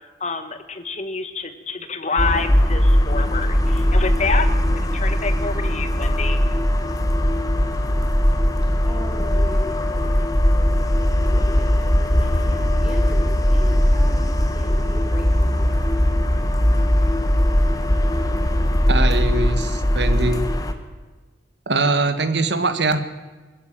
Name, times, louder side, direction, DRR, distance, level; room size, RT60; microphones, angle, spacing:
voice 1, 0.2-6.4, left 4 dB, 40° left, 9 dB, 1.6 m, -27 dB
sound 1, 2.2-20.7, equal, 20° left, 1.4 m, -19 dB
voice 2, 8.7-15.8, equal, 5° right, -1 dB, 2.9 m, -39 dB
voice 3, 18.9-20.5 21.7-23.0, right 3 dB, 75° right, 10 dB, 1.6 m, -22 dB
21.0 x 14.0 x 8.9 m, 1.3 s
head